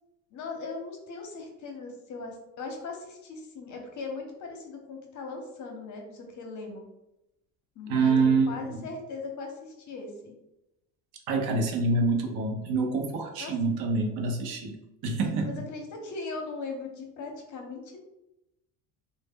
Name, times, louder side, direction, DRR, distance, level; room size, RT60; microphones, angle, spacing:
voice 1, 0.3-6.9 7.8-10.4 13.4-13.5 15.4-18.0, left 3 dB, 45° left, 2 dB, 0.7 m, -39 dB
voice 2, 7.9-8.8 11.3-14.8 15.0-15.5, right 3 dB, 65° right, 2 dB, 0.6 m, -26 dB
2.0 x 2.0 x 3.4 m, 0.90 s
cardioid pair, 110°, 41 cm